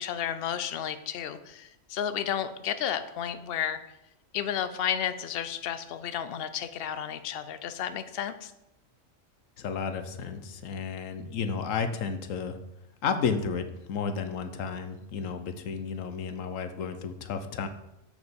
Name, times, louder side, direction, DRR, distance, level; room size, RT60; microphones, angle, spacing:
voice 1, 0.0-3.8 4.3-8.5, left 9 dB, 60° left, 12 dB, 0.7 m, -32 dB
voice 2, 9.6-12.6 13.0-17.7, left 6 dB, 80° left, 9 dB, 1.1 m, -32 dB
6.4 x 5.1 x 7.0 m, 0.88 s
omnidirectional pair, 1.3 m